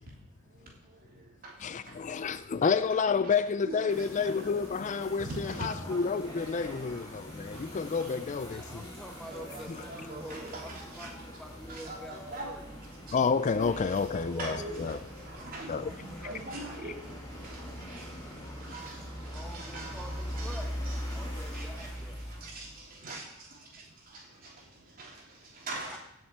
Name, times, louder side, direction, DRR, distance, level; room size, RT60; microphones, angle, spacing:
voice 1, 0.0-2.2 2.6-2.7 3.2-3.3 3.7-4.1 4.4-4.5 5.2-5.7 8.0-8.1 9.2-11.1 11.7-12.5 13.1-13.2 13.6-26.0, right 2 dB, 40° right, 3.2 m, -44 dB
voice 2, 1.6-5.3 5.6-8.9 9.7-9.8 13.1-15.0 15.7-15.8, left 5 dB, 35° left, 0.4 m, -29 dB
sound 1, 3.9-23.0, equal, 20° left, 5.3 m, -42 dB
voice 3, 8.4-10.7 11.0-12.1 12.4-12.6 14.3-14.5 14.9-15.0 15.8-15.9 16.2-16.4 19.3-20.7 21.1-22.2 25.9-26.0, equal, 5° left, 0.7 m, -47 dB
16.0 x 7.4 x 4.6 m
head